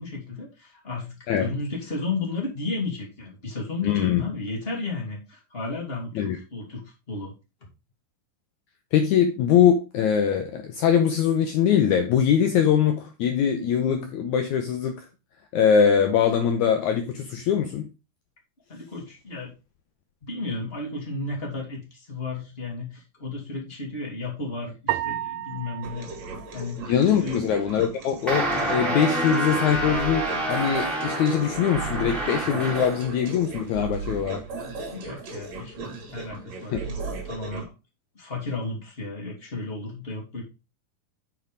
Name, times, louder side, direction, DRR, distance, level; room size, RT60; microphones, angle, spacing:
voice 1, 0.0-7.3 18.7-19.5 20.2-26.1 26.5-26.9 27.2-27.5 34.9-37.7 38.1-40.4, left 3 dB, 15° left, 2.5 m, -33 dB
voice 2, 3.8-4.2 6.1-6.4 8.9-15.1 15.5-17.9 26.9-30.2 30.5-34.4 36.7-36.8, left 8 dB, 80° left, 1.7 m, -22 dB
sound 1, 24.9-27.4, right 15 dB, 80° right, 1.8 m, -33 dB
sound 2, 25.8-37.6, right 4 dB, 50° right, 2.8 m, -36 dB
sound 3, 28.3-33.1, right 1 dB, ahead, 3.0 m, -28 dB
7.0 x 6.0 x 5.0 m
omnidirectional pair, 4.5 m